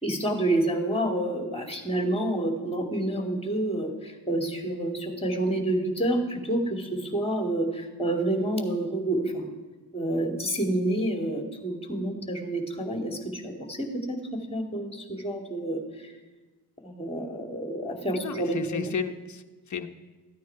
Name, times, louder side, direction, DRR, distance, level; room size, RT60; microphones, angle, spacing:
voice 1, 0.0-9.5 9.9-16.1 16.8-18.8, right 1 dB, 10° left, 3 dB, 2.6 m, -28 dB
voice 2, 18.1-19.9, left 6 dB, 40° left, 7 dB, 1.1 m, -33 dB
14.5 x 9.3 x 4.8 m, 1.2 s
hypercardioid pair, 50°, 47 cm